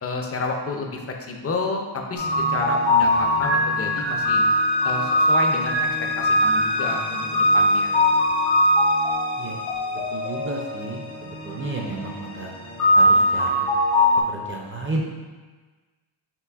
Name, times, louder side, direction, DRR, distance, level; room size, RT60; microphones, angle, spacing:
voice 1, 0.0-4.4 4.8-5.7 6.2-8.0, left 3 dB, 35° left, 2 dB, 0.4 m, -30 dB
sound 1, 2.2-14.2, left 1 dB, 80° left, 1.3 m, -21 dB
voice 2, 9.9-12.5 12.9-13.7 14.3-15.0, right 2 dB, 30° right, -1 dB, 0.4 m, -32 dB
5.8 x 3.1 x 2.3 m, 1.4 s
wide cardioid pair, 125°, 47 cm